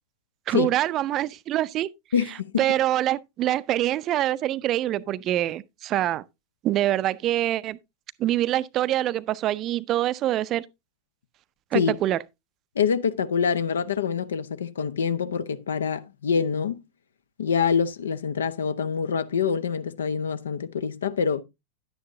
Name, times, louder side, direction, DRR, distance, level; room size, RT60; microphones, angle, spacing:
voice 1, 0.5-1.9 2.6-6.2 6.6-7.8 8.2-10.6 11.7-12.2, right 13 dB, 35° right, 0.5 m, -25 dB
voice 2, 2.1-2.7 11.7-12.0 12.7-16.8 17.4-21.4, left 6 dB, 65° left, 0.9 m, -25 dB
11.0 x 9.2 x 2.7 m
figure-of-eight pair, 90°, 0 cm